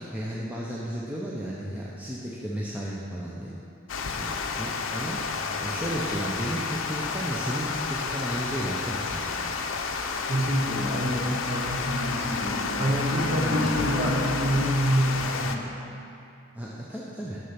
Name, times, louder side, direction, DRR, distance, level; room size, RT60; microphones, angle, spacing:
voice 1, 0.0-3.5 4.2-5.2 5.6-9.6 12.8-13.7 16.5-17.4, equal, 10° right, -6 dB, 0.6 m, -34 dB
Water, 3.9-15.6, left 4 dB, 70° left, 0.5 m, -30 dB
voice 2, 10.3-15.9, equal, 30° right, -2 dB, 1.1 m, -27 dB
6.8 x 6.5 x 5.8 m, 2.7 s
head